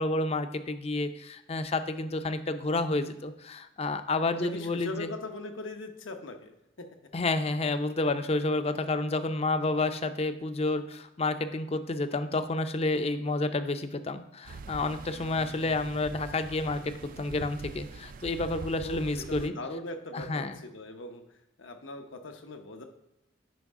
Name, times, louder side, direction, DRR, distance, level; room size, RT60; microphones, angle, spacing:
voice 1, 0.0-5.1 7.1-19.5 20.1-20.6, left 2 dB, 30° left, 10 dB, 0.5 m, -30 dB
voice 2, 4.4-6.9 18.8-19.0 19.3-21.2 21.6-22.8, left 2 dB, 85° left, 5 dB, 1.0 m, -40 dB
sound 1, 14.4-19.5, right 4 dB, 45° right, 0.3 m, -44 dB
9.2 x 5.4 x 3.6 m, 0.89 s
head